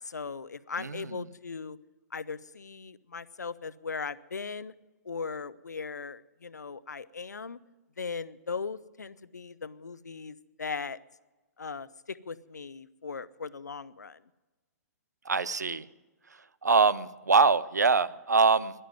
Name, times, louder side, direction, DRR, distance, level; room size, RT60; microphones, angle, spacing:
voice 1, 0.0-1.8 2.1-4.7 5.0-7.6 8.0-11.0 11.6-14.2, left 5 dB, 85° left, 17 dB, 0.6 m, -38 dB
voice 2, 0.8-1.2 15.2-15.9 16.6-18.7, right 4 dB, 90° right, 18 dB, 0.6 m, -24 dB
12.0 x 11.0 x 9.2 m, 1.2 s
figure-of-eight pair, 120°, 9 cm